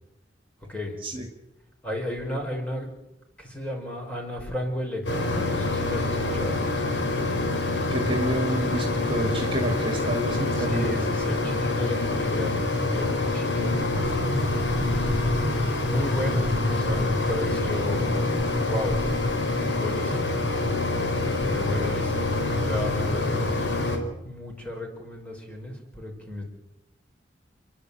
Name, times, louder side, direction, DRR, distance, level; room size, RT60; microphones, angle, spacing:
voice 1, 1.8-2.9 3.4-6.6 10.5-14.6 15.8-18.3 18.6-19.0 19.6-20.4 21.4-26.4, left 1 dB, 10° left, 1 dB, 5.5 m, -34 dB
Mechanisms, 5.0-24.0, left 2 dB, 75° left, 3.7 m, -26 dB
voice 2, 7.9-11.1, right 1 dB, 30° right, 3 dB, 2.4 m, -29 dB
29.0 x 11.5 x 8.6 m, 0.92 s
head